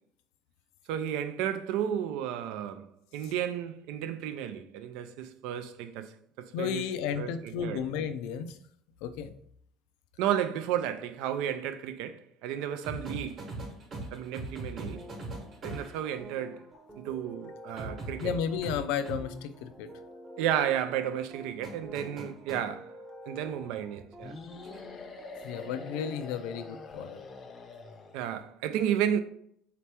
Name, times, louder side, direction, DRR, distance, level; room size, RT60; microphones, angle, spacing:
voice 1, 0.9-2.9 3.1-6.8 7.2-7.8 10.2-13.5 14.1-15.0 15.6-16.6 17.0-18.3 20.4-22.9 23.3-24.3 28.1-29.2, right 10 dB, 75° right, 0.4 m, -32 dB
voice 2, 6.5-8.6 9.0-9.3 18.2-19.9 25.4-27.2, left 7 dB, 80° left, 0.4 m, -33 dB
sound 1, 12.8-16.1 17.8-19.2 21.6-22.6 24.6-24.9, right 2 dB, 35° right, 1.1 m, -40 dB
sound 2, 14.9-26.2, equal, 10° right, 0.7 m, -49 dB
sound 3, 24.2-28.4, left 3 dB, 30° left, 0.6 m, -45 dB
4.2 x 2.9 x 3.3 m
cardioid pair, 135°, 0 cm